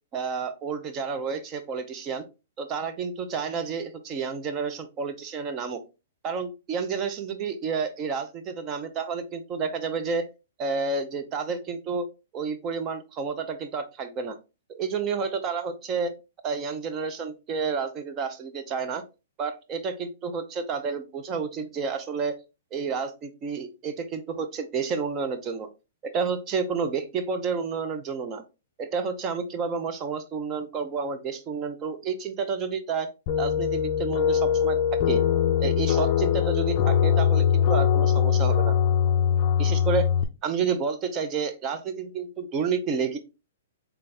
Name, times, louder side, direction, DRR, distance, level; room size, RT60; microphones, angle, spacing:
voice 1, 0.1-2.2 2.6-5.8 6.2-10.3 10.6-12.1 12.3-14.4 14.7-16.1 16.4-19.0 19.4-22.4 22.7-25.7 26.0-28.4 28.8-33.1 33.4-35.2 35.6-38.8 39.6-40.1 40.4-43.2, right 5 dB, 20° right, 9 dB, 0.5 m, -30 dB
sound 1, 33.3-40.2, left 8 dB, 35° left, 0.4 m, -22 dB
3.9 x 3.4 x 3.2 m, 0.29 s
hypercardioid pair, 165°, 0 cm